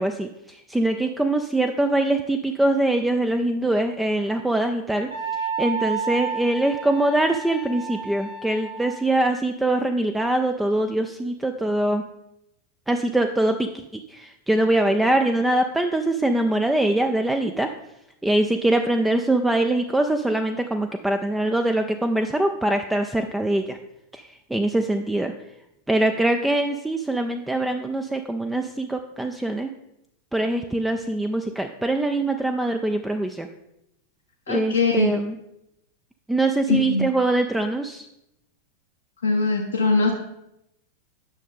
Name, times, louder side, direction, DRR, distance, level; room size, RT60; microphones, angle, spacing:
voice 1, 0.0-5.1 5.6-12.0 12.9-13.8 14.1-17.7 18.2-23.8 24.1-24.2 24.5-25.3 25.9-29.7 30.3-33.5 34.5-35.4 36.3-38.1, right 1 dB, 5° right, 6 dB, 0.4 m, -23 dB
Wind instrument woodwind instrument, 5.1-9.2, right 5 dB, 70° right, 2.1 m, -31 dB
voice 2, 34.5-35.2 36.7-37.1 39.2-40.1, left 3 dB, 70° left, 1 dB, 0.7 m, -21 dB
9.1 x 6.3 x 3.6 m, 0.85 s
figure-of-eight pair, 90°, 0 cm